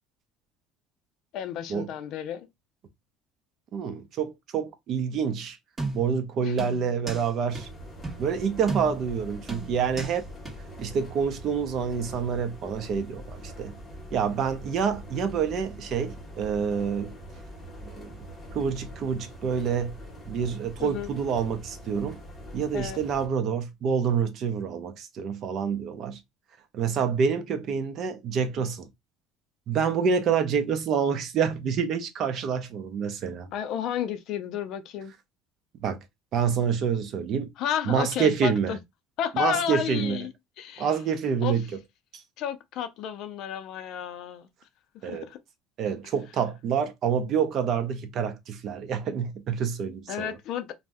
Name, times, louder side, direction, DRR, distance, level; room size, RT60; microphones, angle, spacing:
voice 1, 1.3-2.5 6.4-6.5 20.8-21.1 22.7-23.0 33.5-35.1 37.6-38.8 39.2-40.9 41.4-41.5 42.4-44.5 44.9-45.4 50.1-50.7, left 9 dB, 50° left, 0.4 m, -32 dB
voice 2, 3.7-5.6 5.9-7.7 8.2-10.2 10.8-13.7 14.1-17.1 17.8-18.2 18.5-19.9 20.3-22.2 22.5-26.2 26.7-28.9 29.7-33.5 35.8-36.0 36.3-37.5 37.9-38.8 39.3-40.2 40.8-41.6 45.0-45.3 45.8-50.3, right 6 dB, 40° right, 0.5 m, -27 dB
sound 1, 5.8-6.2 6.6-7.3 7.6-7.7 8.0-8.2 8.7-9.1 9.5-10.2 10.5-10.6, right 2 dB, 20° right, 1.3 m, -34 dB
sound 2, 7.5-23.3, equal, 10° left, 0.8 m, -43 dB
2.6 x 2.1 x 3.4 m
cardioid pair, 155°, 0 cm